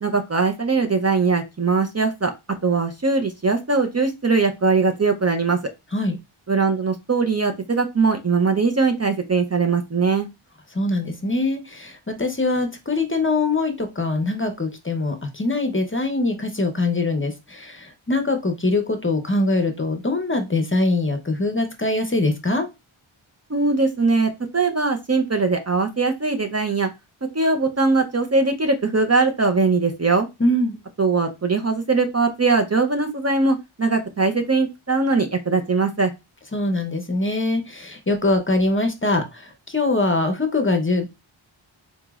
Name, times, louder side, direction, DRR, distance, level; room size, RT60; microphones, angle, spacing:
voice 1, 0.0-2.3 2.6-5.6 6.5-10.3 23.5-26.9 27.3-30.3 31.0-36.1, right 4 dB, 30° right, 5 dB, 0.5 m, -21 dB
voice 2, 10.7-22.7 30.4-30.8 36.5-41.2, left 2 dB, 25° left, 6 dB, 0.6 m, -23 dB
3.9 x 2.9 x 2.3 m, 0.23 s
wide cardioid pair, 70°, 50 cm